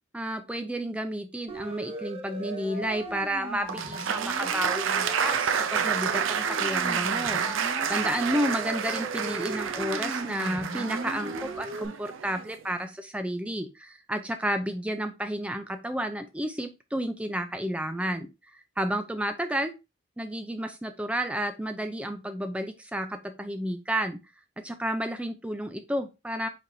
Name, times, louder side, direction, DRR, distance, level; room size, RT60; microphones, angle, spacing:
voice 1, 0.1-7.4 7.9-18.3 18.8-19.7 20.2-24.2 24.6-26.5, right 1 dB, 5° right, 7 dB, 0.4 m, -31 dB
Siren, 1.5-11.9, right 2 dB, 25° right, 0.8 m, -38 dB
Applause, 3.7-12.6, right 7 dB, 65° right, 0.5 m, -29 dB
4.8 x 4.2 x 2.6 m, 0.26 s
head